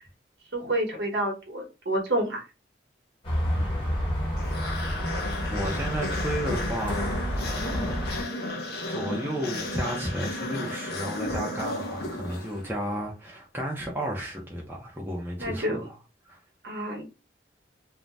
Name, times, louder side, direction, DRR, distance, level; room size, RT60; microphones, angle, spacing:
voice 1, 0.5-2.4 15.4-15.8 16.6-17.0, right 1 dB, 70° right, 1.0 m, -28 dB
sound 1, 3.2-8.2, equal, 25° left, 1.2 m, -30 dB
voice 2, 3.4-4.2 5.5-7.9 8.9-16.0 16.3-16.4, equal, 10° right, 0.6 m, -33 dB
sound 2, 4.4-12.8, left 1 dB, 55° left, 0.6 m, -33 dB
2.6 x 2.1 x 3.3 m
head